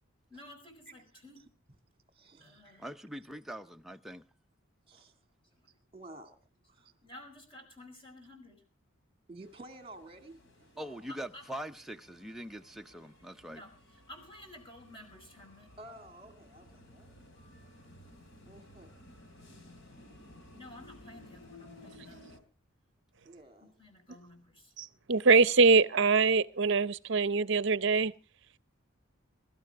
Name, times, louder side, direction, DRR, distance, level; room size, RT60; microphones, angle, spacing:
voice 1, 0.3-1.4 2.4-2.9 5.6-5.8 7.0-8.6 11.1-11.5 13.4-15.7 17.3-18.2 20.6-22.3 23.6-24.7, left 1 dB, 25° left, 5.1 m, -53 dB
voice 2, 2.1-2.9 4.9-5.1 5.9-6.4 6.7-6.9 9.3-11.1 15.8-17.7 18.4-18.9 19.9-20.2 23.2-23.8, right 2 dB, 25° right, 2.3 m, -52 dB
voice 3, 2.8-4.3 10.8-13.6, equal, ahead, 0.6 m, -43 dB
sound 1, 9.4-22.4, left 1 dB, 55° left, 3.3 m, -56 dB
voice 4, 24.8-28.1, right 4 dB, 55° right, 0.7 m, -24 dB
23.5 x 13.0 x 3.5 m
head